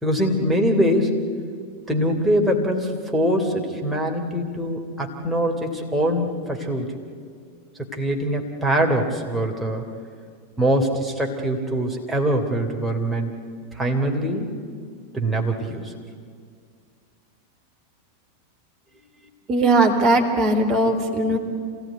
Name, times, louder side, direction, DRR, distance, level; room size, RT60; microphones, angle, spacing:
voice 1, 0.0-1.2 1.9-6.9 7.9-9.8 10.6-13.3 13.7-14.5 15.1-15.9, equal, 5° right, 0 dB, 3.2 m, -23 dB
voice 2, 19.5-21.4, right 2 dB, 30° right, 4 dB, 4.1 m, -19 dB
26.5 x 18.5 x 9.4 m, 2.1 s
figure-of-eight pair, 90°, 0 cm